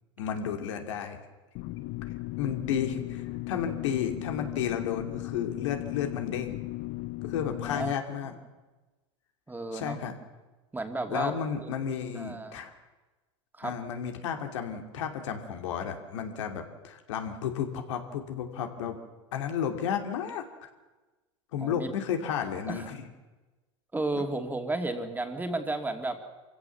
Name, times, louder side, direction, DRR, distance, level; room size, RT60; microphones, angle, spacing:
voice 1, 0.2-1.2 2.4-6.6 7.2-8.3 9.7-10.1 11.1-12.7 13.6-19.0 19.3-20.7 21.5-23.1 24.1-24.2, left 8 dB, 75° left, 5 dB, 2.7 m, -32 dB
Electrical Hum.R, 1.6-7.9, left 20 dB, 55° left, 0.7 m, -36 dB
voice 2, 9.5-10.0 10.7-11.3 11.6-11.7 12.1-12.6 13.6-13.7 21.6-21.9 22.7-22.8 23.9-26.2, right 2 dB, 10° right, 5 dB, 2.8 m, -33 dB
25.0 x 16.0 x 7.2 m, 1.2 s
hypercardioid pair, 90°, 16 cm